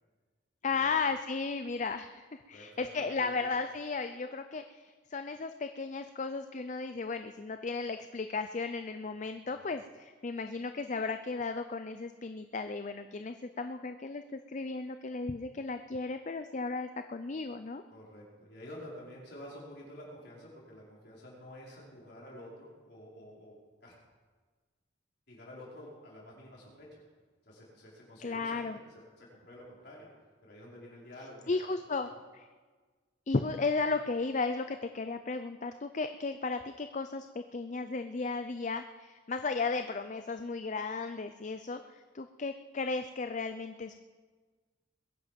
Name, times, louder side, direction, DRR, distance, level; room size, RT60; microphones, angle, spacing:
voice 1, 0.6-17.8 28.2-28.8 31.5-32.1 32.3-32.5 33.3-43.9, left 4 dB, 40° left, 9 dB, 0.5 m, -35 dB
voice 2, 2.5-3.5 9.6-9.7 17.9-23.5 23.8-23.9 25.3-27.0 27.4-30.1 30.4-31.6 32.0-32.2, left 1 dB, 55° left, -5 dB, 5.2 m, -50 dB
21.5 x 10.5 x 5.3 m, 1.4 s
head